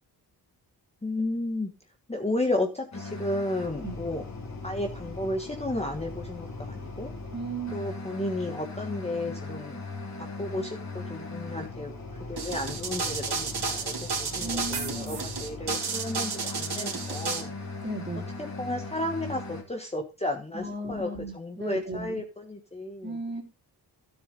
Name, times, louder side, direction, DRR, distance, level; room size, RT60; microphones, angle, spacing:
voice 1, 1.0-1.7 2.1-4.2 4.6-7.1 7.7-9.8 10.2-11.9 12.3-17.5 18.4-23.2, left 1 dB, 15° left, 3 dB, 1.4 m, -33 dB
sound 1, 2.9-19.6, left 3 dB, 40° left, 3.1 m, -39 dB
voice 2, 7.3-7.9 14.4-15.2 17.8-18.3 20.5-22.2 23.0-23.4, right 1 dB, 25° right, 2 dB, 3.0 m, -35 dB
sound 2, 12.4-17.4, right 5 dB, 65° right, 2.9 m, -32 dB
13.0 x 7.3 x 3.9 m, 0.28 s
wide cardioid pair, 165°, 42 cm